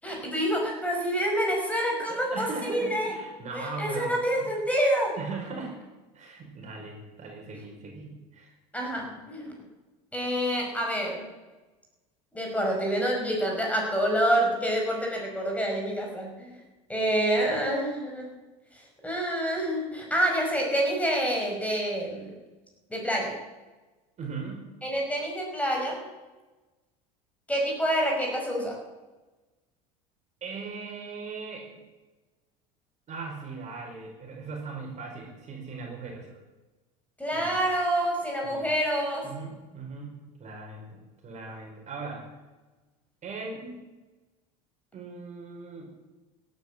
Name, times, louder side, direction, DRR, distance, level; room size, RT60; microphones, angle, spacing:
voice 1, 0.0-3.1 3.5-5.2 8.7-9.5 10.1-11.3 12.3-16.6 16.9-18.3 18.7-22.3 22.9-23.4 24.8-26.0 27.5-28.8 37.2-39.3 43.6-43.7, equal, 5° left, 0 dB, 5.3 m, -27 dB
voice 2, 2.1-4.5 5.1-5.8 6.1-8.5 24.2-24.6 30.4-31.7 33.1-36.3 37.3-37.6 38.4-38.7 39.2-42.3 43.2-43.6 44.9-45.9, right 4 dB, 40° right, 1 dB, 4.9 m, -39 dB
16.5 x 9.7 x 7.4 m, 1.2 s
supercardioid pair, 95°, 20 cm